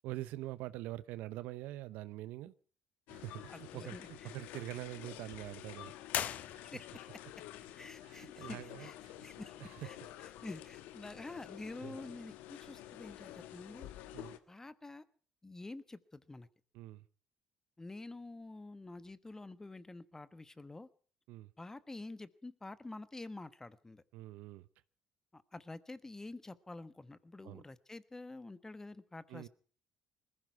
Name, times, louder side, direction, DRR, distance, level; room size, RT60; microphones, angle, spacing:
voice 1, 0.0-2.5 3.1-5.9 6.4-6.6 8.0-9.3 9.6-9.9 11.8-12.0 14.1-14.4 16.7-17.0 21.3-21.5 24.1-24.7 27.4-27.6 29.3-29.5, right 16 dB, 75° right, 17 dB, 0.8 m, -45 dB
sound 1, 3.1-14.4, left 13 dB, 80° left, 1.2 m, -50 dB
voice 2, 3.5-4.3 6.7-7.2 7.8-9.0 9.2-10.0 10.4-13.9 14.5-15.0 15.4-16.5 17.8-20.9 21.6-24.0 25.3-29.5, left 2 dB, 15° left, 15 dB, 1.2 m, -48 dB
sound 2, 6.1-7.1, left 10 dB, 60° left, 0.9 m, -38 dB
20.5 x 15.0 x 4.7 m, 0.43 s
supercardioid pair, 70°, 3 cm